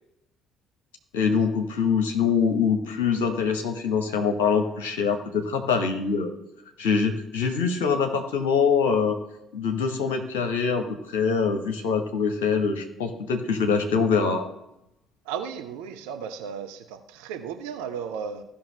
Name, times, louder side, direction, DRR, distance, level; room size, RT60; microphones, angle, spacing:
voice 1, 1.1-6.3 6.8-9.2 9.5-14.5, left 5 dB, 70° left, 5 dB, 1.0 m, -24 dB
voice 2, 15.3-18.4, right 7 dB, 70° right, 6 dB, 0.7 m, -34 dB
15.5 x 5.7 x 3.3 m, 0.83 s
figure-of-eight pair, 50°, 0 cm